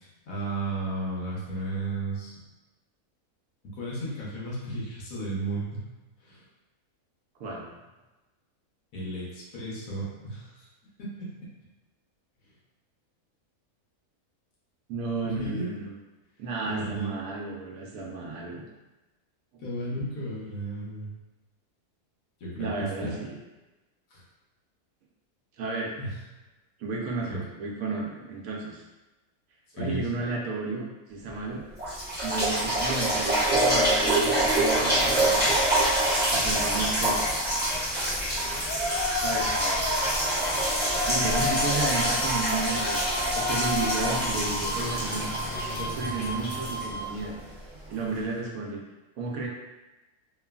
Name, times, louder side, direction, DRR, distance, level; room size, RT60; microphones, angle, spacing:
voice 1, 0.0-2.3 3.7-5.8 6.2-6.4 8.9-10.7 11.0-11.5 15.2-15.7 16.6-17.2 19.6-21.1 22.4-23.1 24.1-24.2 26.0-26.2 27.3-27.4 29.8-30.3 36.1-36.3, right 2 dB, 70° left, -6 dB, 1.2 m, -34 dB
voice 2, 14.9-15.9 16.4-18.6 19.5-19.6 22.6-23.4 25.6-25.9 26.8-28.8 29.7-31.6 32.2-35.6 36.3-37.2 39.2-39.8 41.1-45.3 45.7-47.4 47.9-48.8 49.2-49.5, right 3 dB, 75° right, -2 dB, 1.0 m, -33 dB
sound 1, 31.3-31.4 31.8-47.5 48.2-48.3, right 1 dB, 15° right, 0.4 m, -26 dB
Yell, 37.1-47.3, left 4 dB, 90° left, 1.2 m, -35 dB
sound 2, 39.4-47.1, right 2 dB, 50° left, 0.9 m, -37 dB
3.1 x 2.3 x 2.2 m, 1.1 s
omnidirectional pair, 1.6 m